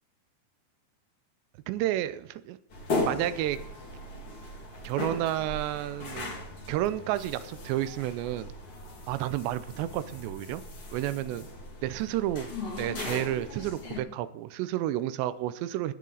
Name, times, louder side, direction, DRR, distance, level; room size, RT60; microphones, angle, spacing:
voice 1, 1.7-2.6 3.0-3.6 4.8-6.4 6.7-8.5 9.1-10.6 10.9-11.5 11.8-12.5 12.8-15.9, right 13 dB, 80° right, 14 dB, 2.8 m, -31 dB
sound 1, 2.7-14.0, left 2 dB, 35° left, 2.4 m, -37 dB
16.5 x 10.5 x 4.0 m, 0.71 s
omnidirectional pair, 5.1 m